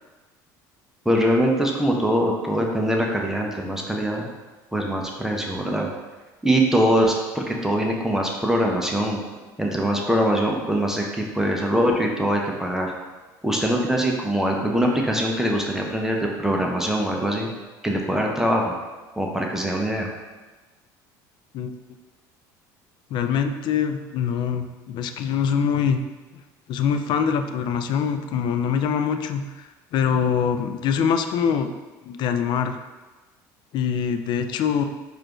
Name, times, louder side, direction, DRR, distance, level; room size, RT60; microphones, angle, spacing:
voice 1, 1.1-4.3 4.7-5.9 6.4-9.2 9.6-12.9 13.4-17.5 17.8-18.7 19.2-20.1, equal, 5° right, 0 dB, 0.6 m, -23 dB
voice 2, 23.1-26.0 26.7-31.7 32.0-32.8 33.7-34.8, left 7 dB, 55° left, 8 dB, 0.3 m, -24 dB
4.6 x 2.5 x 3.0 m, 1.2 s
supercardioid pair, 85°, 9 cm